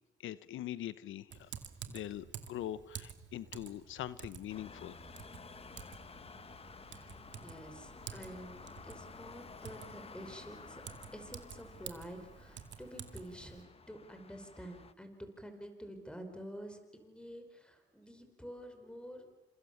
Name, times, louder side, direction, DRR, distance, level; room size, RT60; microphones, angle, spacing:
voice 1, 0.2-1.5 1.9-5.0, left 12 dB, 80° left, 16 dB, 0.9 m, -42 dB
Typing, 1.3-13.6, right 8 dB, 65° right, 2.4 m, -51 dB
sound 1, 4.5-14.9, left 5 dB, 30° left, 1.1 m, -53 dB
voice 2, 6.8-10.8 11.1-19.3, equal, 5° left, 7 dB, 5.2 m, -49 dB
29.5 x 26.5 x 7.2 m, 1.1 s
cardioid pair, 90°, 20 cm